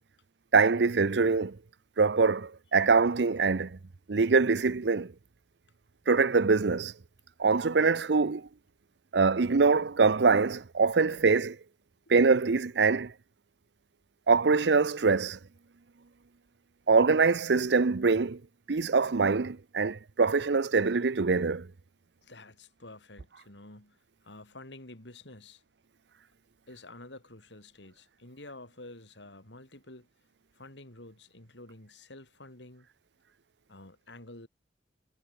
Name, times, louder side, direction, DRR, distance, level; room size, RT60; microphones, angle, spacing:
voice 1, 0.5-1.6 2.0-3.8 4.1-5.1 6.1-6.9 7.4-8.5 9.1-11.6 12.1-13.1 14.3-15.4 16.9-18.4 18.7-21.7, right 4 dB, 70° right, 0.7 m, -24 dB
voice 2, 22.2-24.0 24.2-25.6 26.7-30.1 30.5-32.9 33.7-34.5, left 2 dB, 80° left, 5.0 m, -49 dB
head